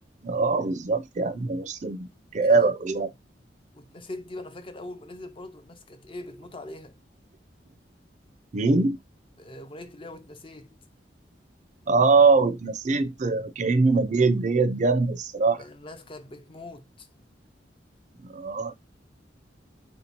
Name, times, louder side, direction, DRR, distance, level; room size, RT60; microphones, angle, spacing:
voice 1, 0.2-3.1 8.5-9.0 11.9-15.6 18.2-18.7, right 4 dB, 40° right, 0.4 m, -22 dB
voice 2, 2.4-2.7 3.7-7.0 9.4-10.8 15.6-17.1, left 2 dB, 30° left, 0.5 m, -42 dB
3.3 x 2.8 x 4.4 m
head